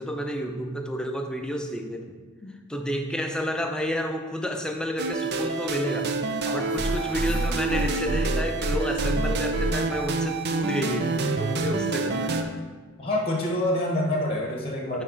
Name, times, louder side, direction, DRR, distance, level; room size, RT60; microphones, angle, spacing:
voice 1, 0.0-2.2 2.7-12.7, equal, 5° left, 4 dB, 0.5 m, -31 dB
sound 1, 5.0-12.4, right 3 dB, 50° right, 0.5 m, -27 dB
sound 2, 6.7-8.7, left 2 dB, 90° left, 0.7 m, -43 dB
voice 2, 13.0-15.0, left 1 dB, 25° left, 0 dB, 0.9 m, -27 dB
9.4 x 3.3 x 5.0 m, 1.4 s
head